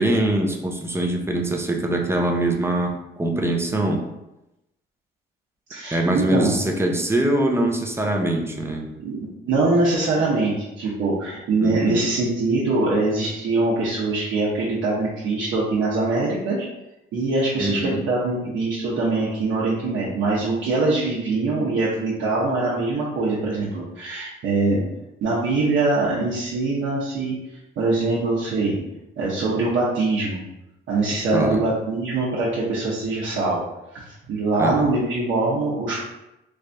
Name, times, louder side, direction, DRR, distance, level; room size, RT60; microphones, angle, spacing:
voice 1, 0.0-4.0 5.9-8.9 11.6-12.0 17.6-18.0 31.3-31.6 34.6-34.9, right 1 dB, 10° right, 2 dB, 0.6 m, -23 dB
voice 2, 5.7-6.5 9.0-16.7 17.1-24.8 25.2-27.4 27.8-28.8 29.2-30.4 30.9-33.6 33.9-36.0, right 3 dB, 75° right, -7 dB, 0.9 m, -23 dB
3.3 x 2.6 x 3.4 m, 0.92 s
cardioid pair, 90°, 20 cm